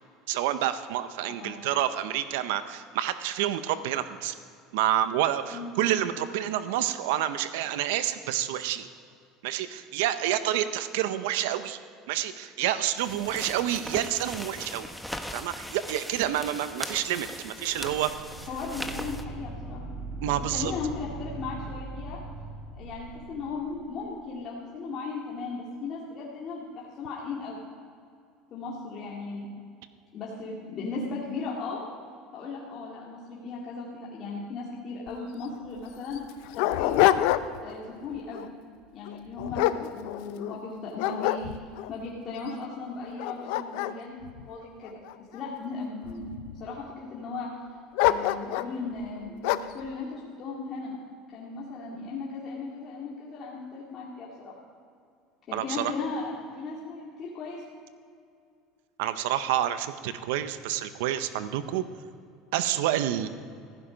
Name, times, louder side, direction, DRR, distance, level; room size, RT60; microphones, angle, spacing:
voice 1, 0.3-4.3 4.7-8.9 9.4-11.8 12.1-14.9 15.3-18.1 20.2-20.7 55.5-55.9 59.0-61.8 62.5-63.3, right 12 dB, 80° right, 12 dB, 0.7 m, -28 dB
sound 1, 13.0-19.2, equal, ahead, 1.0 m, -39 dB
sound 2, 17.7-23.9, right 3 dB, 55° right, 3.2 m, -40 dB
voice 2, 18.5-19.8 20.5-22.2 22.8-27.7 28.5-29.5 30.1-31.8 32.3-36.2 36.5-37.2 37.6-38.5 38.9-41.6 41.9-44.2 44.5-45.0 45.3-46.3 46.6-47.5 48.0-51.0 51.3-54.5 55.5-57.6, left 4 dB, 45° left, -5 dB, 2.4 m, -36 dB
Dog, 35.1-35.2 35.4-35.5 36.1-37.7 38.2-38.5 39.1-40.6 41.0-41.9 42.5-42.6 43.1-45.4 46.0-46.7 48.0-48.8 49.4-49.8, left 14 dB, 75° left, 0.6 m, -27 dB
15.5 x 11.5 x 5.2 m, 2.4 s
supercardioid pair, 110°, 0 cm